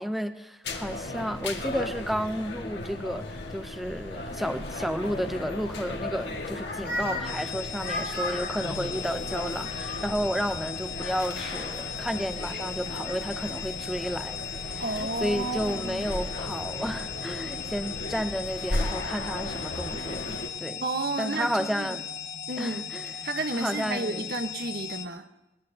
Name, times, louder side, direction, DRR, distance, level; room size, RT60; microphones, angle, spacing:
voice 1, 0.0-20.8 21.2-22.0 22.6-23.1 23.5-24.3, equal, ahead, 9 dB, 0.6 m, -32 dB
sound 1, 0.6-20.5, left 2 dB, 70° left, 1.9 m, -35 dB
sound 2, 7.2-25.1, left 7 dB, 55° left, 1.0 m, -38 dB
voice 2, 14.8-16.1 20.8-22.0 22.5-22.8 23.2-25.3, right 2 dB, 60° right, 7 dB, 1.2 m, -32 dB
22.5 x 20.0 x 2.8 m, 0.98 s
head